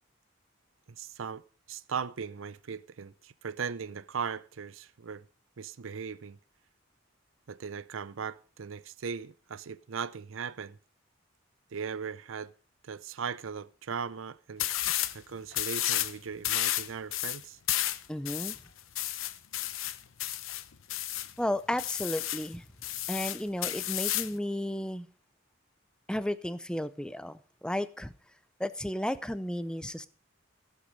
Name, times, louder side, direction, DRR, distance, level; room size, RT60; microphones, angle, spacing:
voice 1, 0.9-1.4 1.7-5.2 5.6-6.4 7.5-10.8 11.7-12.5 12.8-14.7 15.1-17.6, right 6 dB, 80° right, 0.6 m, -38 dB
sound 1, 14.6-15.2 15.5-16.1 16.4-21.3 21.8-22.5 22.8-24.4, left 14 dB, 85° left, 0.8 m, -32 dB
voice 2, 18.1-18.6 21.4-22.6 23.1-25.1 26.1-28.1 28.6-30.1, left 1 dB, 5° left, 0.6 m, -33 dB
15.5 x 8.3 x 5.3 m
head